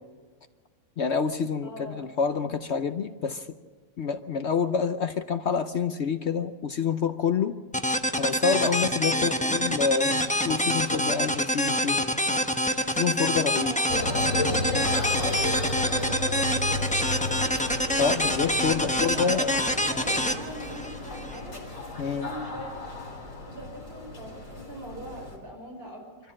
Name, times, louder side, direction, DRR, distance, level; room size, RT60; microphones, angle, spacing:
voice 1, 1.0-3.5 4.0-7.5 8.2-12.4 12.9-13.7 18.0-19.5 22.0-22.3, left 6 dB, 60° left, 9 dB, 0.7 m, -27 dB
voice 2, 1.6-2.1 9.0-9.6 13.5-17.6 18.7-21.5 22.0-22.7 23.0-23.1 23.5-26.0, equal, 30° right, 0 dB, 5.6 m, -41 dB
sound 1, 7.7-21.4, equal, 10° left, 0.5 m, -26 dB
sound 2, 13.9-25.4, left 2 dB, 45° left, 4.3 m, -33 dB
24.5 x 14.0 x 7.5 m, 1.5 s
omnidirectional pair, 2.0 m